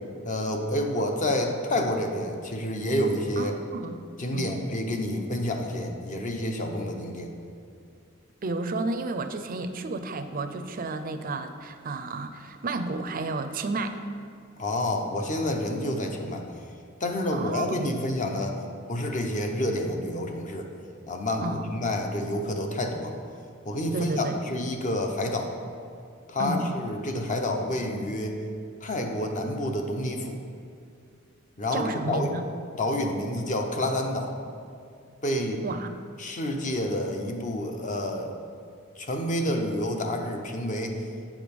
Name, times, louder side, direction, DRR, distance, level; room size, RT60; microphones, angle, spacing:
voice 1, 0.2-3.5 4.2-7.3 14.6-16.4 17.0-18.6 18.9-20.7 21.1-23.2 23.6-25.5 26.3-28.4 28.8-30.4 31.6-32.3 32.8-34.3 35.2-35.6 36.2-38.3 39.0-41.0, left 1 dB, 40° left, 3 dB, 0.8 m, -29 dB
voice 2, 3.4-4.1 4.3-4.6 8.4-14.0 17.3-17.9 21.4-21.7 23.9-24.4 26.4-26.7 31.7-32.4 35.6-35.9, right 3 dB, 45° right, 8 dB, 0.5 m, -32 dB
8.3 x 5.0 x 5.3 m, 2.3 s
head